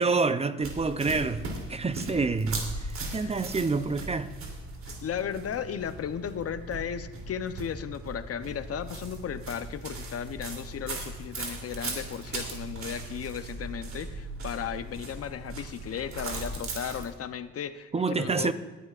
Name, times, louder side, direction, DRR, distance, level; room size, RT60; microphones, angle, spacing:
voice 1, 0.0-4.3 17.9-18.5, right 4 dB, 20° right, 0.5 m, -28 dB
sound 1, 0.6-17.1, right 2 dB, 65° right, 3.1 m, -38 dB
voice 2, 4.9-18.5, left 8 dB, 50° left, 0.8 m, -35 dB
19.5 x 11.0 x 2.5 m
cardioid pair, 90°, 30 cm